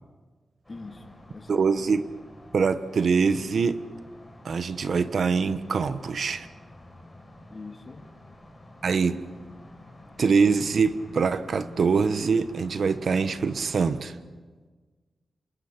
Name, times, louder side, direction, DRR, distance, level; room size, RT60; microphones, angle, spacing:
sound 1, 0.6-14.0, left 1 dB, 10° left, 6.7 m, -49 dB
voice 1, 0.7-1.6 7.5-8.1 10.0-10.2, left 3 dB, 30° left, 2.1 m, -43 dB
voice 2, 1.5-2.1 2.5-3.8 4.4-6.5 8.8-9.3 10.2-14.2, right 5 dB, 60° right, 1.1 m, -24 dB
28.0 x 27.5 x 6.0 m
wide cardioid pair, 120°, 0 cm